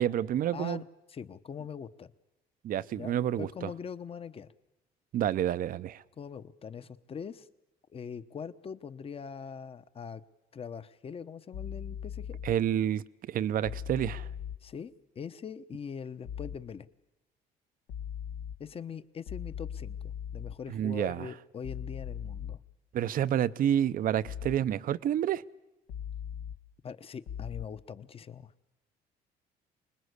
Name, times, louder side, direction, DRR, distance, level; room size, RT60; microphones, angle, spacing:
voice 1, 0.0-0.8 2.6-3.7 5.1-6.0 12.4-14.3 20.7-21.3 22.9-25.4, right 10 dB, 55° right, 0.8 m, -29 dB
voice 2, 0.5-2.1 3.0-4.5 6.2-7.5 7.9-10.2 10.5-12.4 14.6-16.9 18.6-22.6 26.8-28.5, left 7 dB, 35° left, 1.0 m, -42 dB
sound 1, 11.5-12.5 13.6-14.6 16.3-16.6 17.9-18.6 19.3-20.5 21.6-22.6 24.3-24.6 25.9-26.6 27.3-27.6, left 8 dB, 85° left, 1.7 m, -39 dB
25.5 x 20.0 x 8.2 m
cardioid pair, 110°, 17 cm